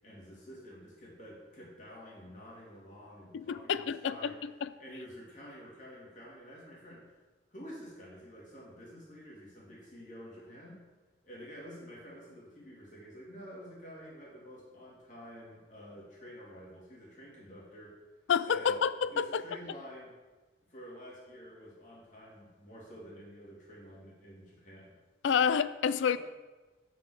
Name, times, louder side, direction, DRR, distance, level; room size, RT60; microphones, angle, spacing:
voice 1, 0.0-4.3 4.8-7.0 7.5-10.8 11.2-17.9 18.5-18.8 19.1-20.1 20.7-25.0 26.1-26.2, equal, 40° left, -5 dB, 2.7 m, -49 dB
voice 2, 3.3-4.7 18.3-19.4 25.2-26.2, left 7 dB, 75° left, 15 dB, 0.4 m, -29 dB
5.9 x 5.9 x 6.5 m, 1.2 s
head